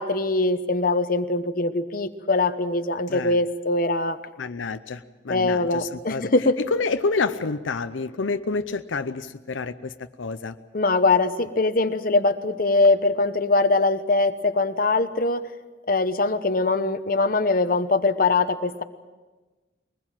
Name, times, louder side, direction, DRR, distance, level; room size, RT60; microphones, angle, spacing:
voice 1, 0.0-4.2 5.3-6.6 10.7-15.4 15.9-18.8, left 3 dB, 45° left, 9 dB, 1.0 m, -22 dB
voice 2, 3.1-3.4 4.4-6.3 6.6-10.6, left 4 dB, 85° left, 10 dB, 0.7 m, -28 dB
22.5 x 20.0 x 7.5 m, 1.3 s
head